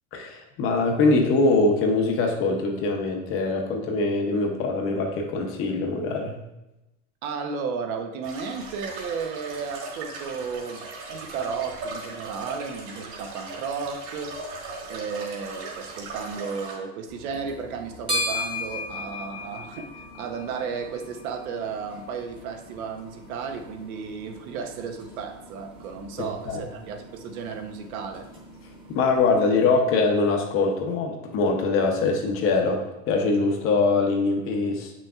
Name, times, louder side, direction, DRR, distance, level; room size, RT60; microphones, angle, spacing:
voice 1, 0.1-6.4 26.2-26.6 28.9-34.9, left 3 dB, 30° left, 3 dB, 0.7 m, -23 dB
voice 2, 7.2-14.6 14.9-28.3, right 5 dB, 75° right, 6 dB, 0.9 m, -34 dB
sound 1, 8.2-16.7, right 3 dB, 50° right, 1.8 m, -38 dB
sound 2, 17.1-29.6, left 1 dB, 10° right, 1.0 m, -38 dB
7.7 x 6.1 x 2.4 m, 0.95 s
supercardioid pair, 160°, 42 cm